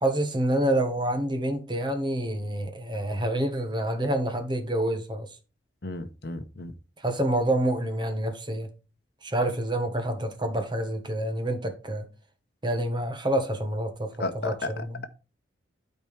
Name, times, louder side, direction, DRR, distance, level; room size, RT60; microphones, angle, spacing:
voice 1, 0.0-5.3 7.0-8.7 9.2-12.1 12.6-14.1 14.3-15.1, right 1 dB, 25° right, 1.3 m, -27 dB
voice 2, 5.8-6.7 14.2-14.7, left 2 dB, 60° left, 0.9 m, -33 dB
11.5 x 4.5 x 3.3 m
head